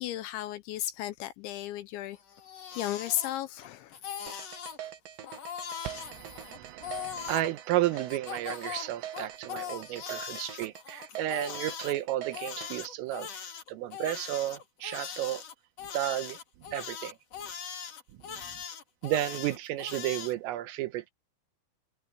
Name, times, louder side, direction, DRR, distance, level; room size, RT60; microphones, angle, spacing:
voice 1, 0.0-2.2 2.8-4.0 7.2-7.3, left 13 dB, 75° left, 2.9 m, -34 dB
Crying sobbing, 2.2-3.7 3.9-4.8 5.2-7.5 8.1-11.9 12.3-20.3, left 8 dB, 50° left, 2.1 m, -40 dB
sound 1, 4.3-12.7, right 11 dB, 60° right, 2.7 m, -43 dB
voice 2, 5.9-13.3 13.7-15.4 15.9-17.2 18.2-18.6 19.0-21.1, right 14 dB, 80° right, 3.8 m, -33 dB
omnidirectional pair, 5.8 m